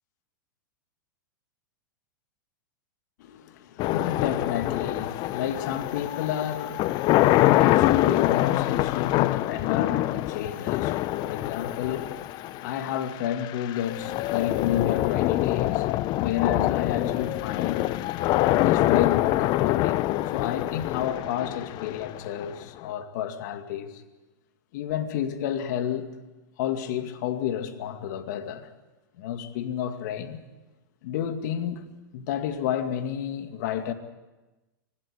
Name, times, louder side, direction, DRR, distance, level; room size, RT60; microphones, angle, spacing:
voice 1, 3.2-17.9 18.6-20.0 20.3-24.0 24.7-26.1 26.6-28.7 29.2-30.4 31.0-33.9, left 9 dB, 60° left, 2.2 m, -31 dB
sound 1, 3.8-22.8, left 16 dB, 40° left, 0.8 m, -25 dB
25.0 x 12.5 x 9.8 m
hypercardioid pair, 105°, 11 cm